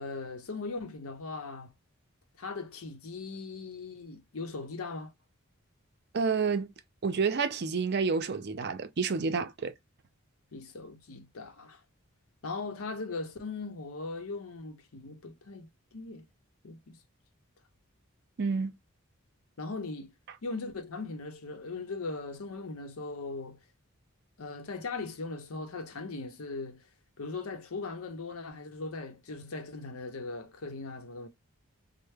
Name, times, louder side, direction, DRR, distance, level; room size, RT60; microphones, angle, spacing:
voice 1, 0.0-1.7 2.4-5.1 10.5-11.8 12.4-16.3 16.6-17.0 19.6-20.1 20.4-23.6 24.4-26.8 27.2-31.3, left 3 dB, 85° left, 0.7 m, -39 dB
voice 2, 6.1-6.7 7.0-9.7 18.4-18.7, right 5 dB, 50° right, 0.5 m, -29 dB
3.2 x 2.1 x 3.4 m
head